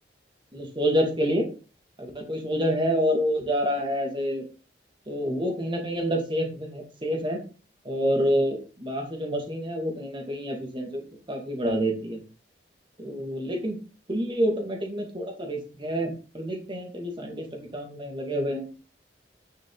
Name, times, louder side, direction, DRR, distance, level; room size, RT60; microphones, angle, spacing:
voice 1, 0.5-1.5 2.0-4.5 5.1-7.4 7.8-11.0 11.3-12.2 13.0-13.8 14.1-17.5 17.7-18.7, equal, 25° right, 2 dB, 2.2 m, -27 dB
9.9 x 6.2 x 3.9 m, 0.35 s
head